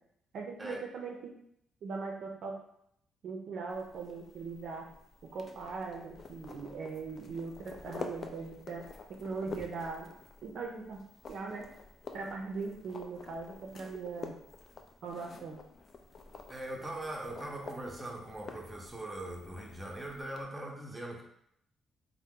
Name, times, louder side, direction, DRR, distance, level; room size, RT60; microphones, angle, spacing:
voice 1, 0.3-1.3 1.8-2.5 3.2-4.9 5.3-8.8 9.2-10.1 10.4-11.0 11.3-11.7 12.1-14.3 15.0-15.6, right 4 dB, 65° right, 1 dB, 0.5 m, -40 dB
sound 1, 3.7-20.4, left 4 dB, 45° left, 0.3 m, -49 dB
voice 2, 16.5-21.2, right 1 dB, 15° right, -1 dB, 0.6 m, -41 dB
2.8 x 2.0 x 3.5 m, 0.74 s
cardioid pair, 90°, 0 cm